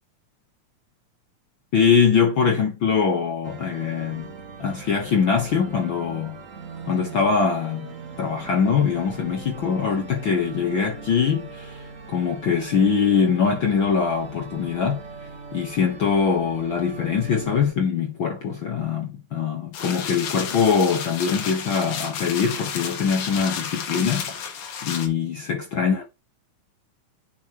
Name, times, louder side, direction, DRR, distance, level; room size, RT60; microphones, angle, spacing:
voice 1, 1.7-4.3 4.6-6.4 6.8-11.9 12.1-15.0 15.5-26.0, left 6 dB, 55° left, 1.4 m, -23 dB
sound 1, 3.4-17.7, right 4 dB, 55° right, 0.9 m, -41 dB
sound 2, 19.7-25.1, left 7 dB, 75° left, 2.8 m, -32 dB
10.0 x 6.1 x 3.0 m
omnidirectional pair, 3.5 m